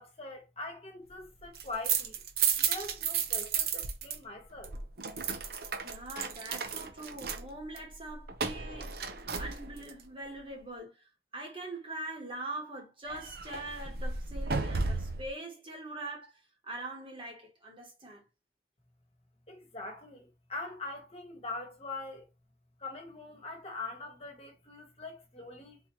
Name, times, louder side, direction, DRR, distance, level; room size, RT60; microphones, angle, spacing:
voice 1, 0.0-2.2 2.6-4.7 19.5-22.2 22.8-25.8, left 3 dB, 35° left, 1.2 m, -43 dB
sound 1, 1.4-4.2 4.4-10.0 13.1-15.3, right 6 dB, 60° right, 0.6 m, -33 dB
voice 2, 5.8-11.0 11.3-18.2, right 2 dB, 30° right, 1.2 m, -43 dB
3.9 x 2.9 x 3.0 m
head